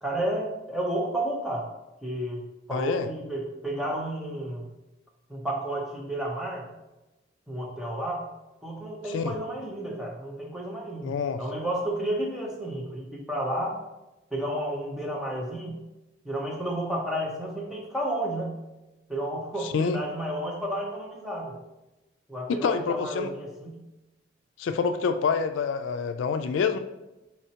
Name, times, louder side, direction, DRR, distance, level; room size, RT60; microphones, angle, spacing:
voice 1, 0.0-1.7 2.0-2.4 2.7-4.6 5.3-6.7 7.5-8.3 8.6-13.8 14.3-15.8 16.2-18.5 19.1-21.6 22.3-23.8, right 1 dB, 5° right, -2 dB, 0.7 m, -31 dB
voice 2, 2.7-3.1 9.1-9.3 11.0-11.4 19.6-20.0 22.5-23.3 24.6-26.8, left 5 dB, 80° left, 9 dB, 0.3 m, -27 dB
4.3 x 4.2 x 2.8 m, 1.0 s
head